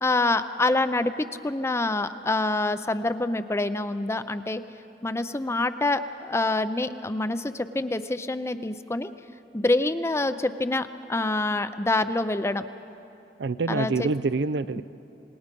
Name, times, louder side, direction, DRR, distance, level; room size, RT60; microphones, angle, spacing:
voice 1, 0.0-4.6 5.0-9.1 9.5-12.7 13.7-14.1, left 2 dB, 15° left, 11 dB, 0.5 m, -26 dB
voice 2, 13.4-14.8, right 3 dB, 80° right, 15 dB, 0.5 m, -26 dB
27.0 x 19.5 x 5.3 m, 3.0 s
head